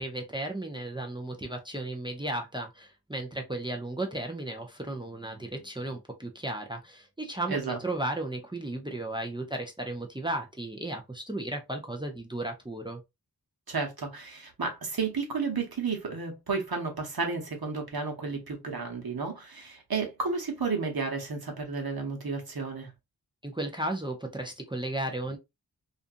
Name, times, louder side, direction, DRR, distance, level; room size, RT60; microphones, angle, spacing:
voice 1, 0.0-13.0 23.4-25.4, right 1 dB, 10° right, 0.5 m, -35 dB
voice 2, 7.5-7.8 13.7-22.9, right 4 dB, 65° right, 1.0 m, -32 dB
2.5 x 2.4 x 2.5 m
wide cardioid pair, 45°, 39 cm